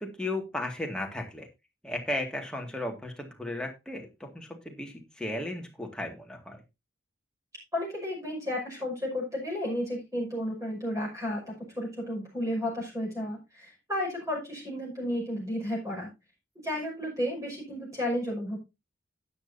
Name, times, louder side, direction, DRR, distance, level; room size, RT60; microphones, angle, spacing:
voice 1, 0.0-1.5 1.8-6.6, left 1 dB, 5° left, 2 dB, 2.1 m, -35 dB
voice 2, 7.7-16.1 16.6-18.6, left 1 dB, 15° right, -2 dB, 5.8 m, -32 dB
12.5 x 10.0 x 2.7 m, 0.24 s
head